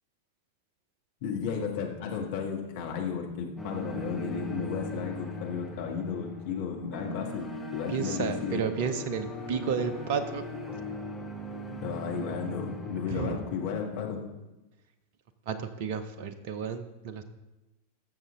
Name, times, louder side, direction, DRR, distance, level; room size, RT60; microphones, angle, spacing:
voice 1, 1.2-8.6 11.8-14.2, left 6 dB, 50° left, 1 dB, 1.7 m, -34 dB
sound 1, 3.6-14.0, left 1 dB, ahead, 1.2 m, -39 dB
voice 2, 7.9-10.4 13.1-13.4 15.5-17.2, right 6 dB, 50° right, 11 dB, 0.8 m, -32 dB
13.5 x 6.8 x 3.7 m, 1.0 s
figure-of-eight pair, 90°, 0 cm